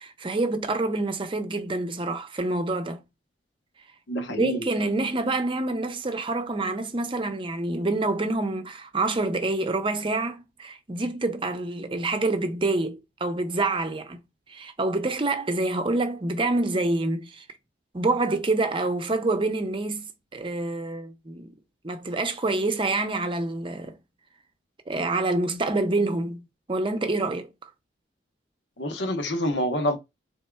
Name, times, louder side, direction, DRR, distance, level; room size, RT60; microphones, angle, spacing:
voice 1, 0.0-3.0 4.3-14.2 14.5-17.4 17.9-21.5 21.8-24.0 24.9-27.5, right 2 dB, 30° right, 0.7 m, -27 dB
voice 2, 4.1-4.7 28.8-30.0, equal, 75° left, 0.9 m, -27 dB
4.2 x 3.6 x 2.2 m
head